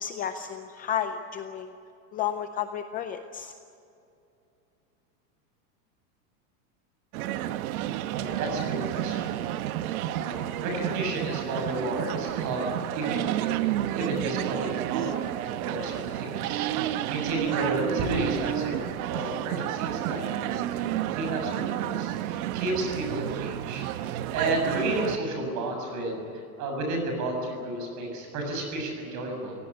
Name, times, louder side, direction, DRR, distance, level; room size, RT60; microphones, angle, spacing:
voice 1, 0.0-1.8 2.1-3.5, left 9 dB, 20° left, 8 dB, 0.5 m, -32 dB
sound 1, 7.1-25.2, right 13 dB, 65° right, 1.1 m, -31 dB
voice 2, 8.0-12.6 13.0-13.6 13.9-23.9 24.3-29.6, right 2 dB, 40° right, 3 dB, 7.1 m, -32 dB
24.5 x 17.5 x 9.8 m, 2.7 s
supercardioid pair, 160°, 46 cm